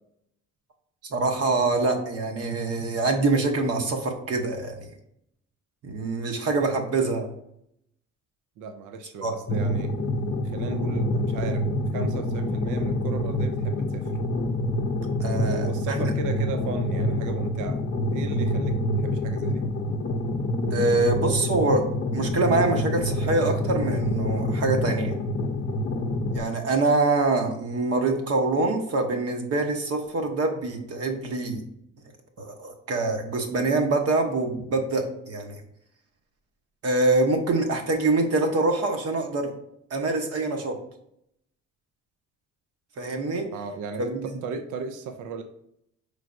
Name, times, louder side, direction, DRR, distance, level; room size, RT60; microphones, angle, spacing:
voice 1, 1.1-4.9 5.8-7.3 9.2-9.3 15.2-16.0 20.7-21.8 22.1-25.1 26.3-31.6 32.4-35.6 36.8-39.5 39.9-40.8 43.0-43.5 44.1-44.3, right 3 dB, 50° right, 3 dB, 0.8 m, -25 dB
voice 2, 8.6-9.9 10.4-11.6 11.9-14.1 15.3-17.8 18.1-19.6 43.5-45.4, right 5 dB, 85° right, 7 dB, 0.5 m, -36 dB
sound 1, 9.5-26.4, left 1 dB, 40° left, 0.6 m, -26 dB
4.5 x 3.3 x 2.5 m, 0.74 s
cardioid pair, 90°, 30 cm